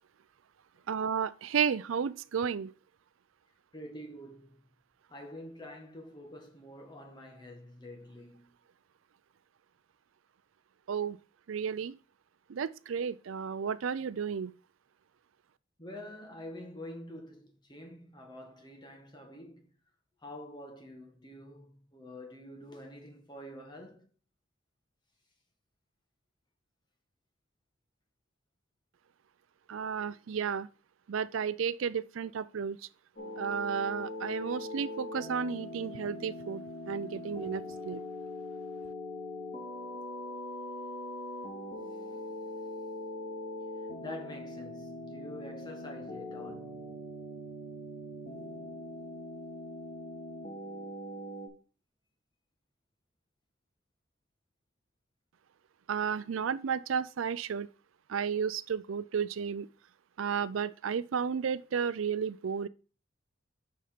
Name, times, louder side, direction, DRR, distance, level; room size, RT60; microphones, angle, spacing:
voice 1, 0.9-2.7 10.9-11.2 11.5-11.9 12.5-14.5 29.7-30.7 31.1-32.8 33.4-38.0 55.9-57.7 58.1-59.7 60.2-62.7, right 7 dB, 85° right, 0.4 m, -33 dB
voice 2, 3.7-4.6 5.1-8.5 15.8-19.7 20.2-24.1 44.0-47.0, left 1 dB, 20° left, 1.6 m, -47 dB
sound 1, 33.2-51.5, left 1 dB, 40° left, 2.3 m, -41 dB
6.6 x 5.6 x 5.0 m
head